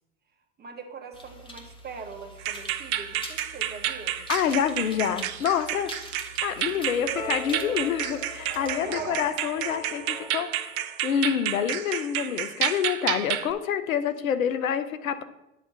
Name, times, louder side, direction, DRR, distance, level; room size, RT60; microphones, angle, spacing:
voice 1, 0.6-4.2 8.8-9.2, right 4 dB, 25° right, 4 dB, 1.3 m, -41 dB
sound 1, 1.1-8.7, left 1 dB, 10° left, 1.3 m, -45 dB
sound 2, 2.4-13.5, right 12 dB, 50° right, 0.7 m, -31 dB
voice 2, 4.3-5.9 6.4-10.5 11.0-15.2, left 8 dB, 85° left, 12 dB, 0.7 m, -27 dB
sound 3, 7.0-11.3, left 1 dB, 40° left, 1.6 m, -39 dB
8.5 x 3.6 x 6.8 m, 0.93 s
hypercardioid pair, 85°, 40 cm